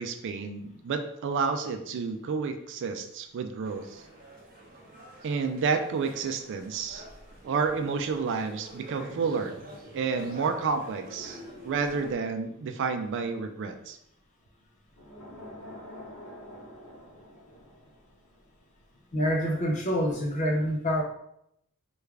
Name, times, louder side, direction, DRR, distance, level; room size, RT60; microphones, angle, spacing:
voice 1, 0.0-4.0 5.2-7.0 7.4-9.6 9.9-11.4 11.6-14.0, right 5 dB, 55° right, 6 dB, 0.3 m, -30 dB
sound 1, 3.6-12.1, right 1 dB, 40° right, 0.7 m, -48 dB
sound 2, 8.9-14.0 14.9-18.8 19.1-19.3, left 1 dB, 85° left, 0.9 m, -49 dB
voice 2, 19.1-21.0, equal, 35° left, -1 dB, 0.5 m, -26 dB
3.3 x 2.3 x 3.3 m, 0.75 s
head